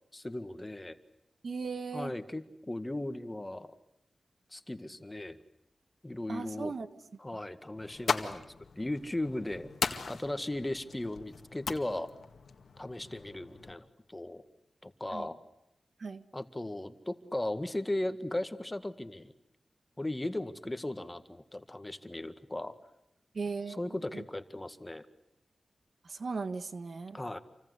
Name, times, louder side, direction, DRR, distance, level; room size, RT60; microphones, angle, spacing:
voice 1, 0.1-1.0 1.9-3.7 4.5-5.4 6.0-6.7 7.2-8.4 8.8-9.7 10.1-12.1 12.8-14.4 14.8-15.4 16.3-19.3 20.0-22.7 23.7-25.1 27.1-27.4, left 1 dB, 20° left, 10 dB, 1.9 m, -37 dB
voice 2, 1.4-2.1 6.3-6.9 15.1-15.3 16.0-16.2 23.3-23.8 24.1-24.2 26.0-27.2, right 4 dB, 65° right, 11 dB, 1.4 m, -37 dB
sound 1, 7.8-13.8, left 5 dB, 80° left, 1.9 m, -38 dB
28.0 x 25.0 x 8.2 m, 0.81 s
cardioid pair, 60°, 0 cm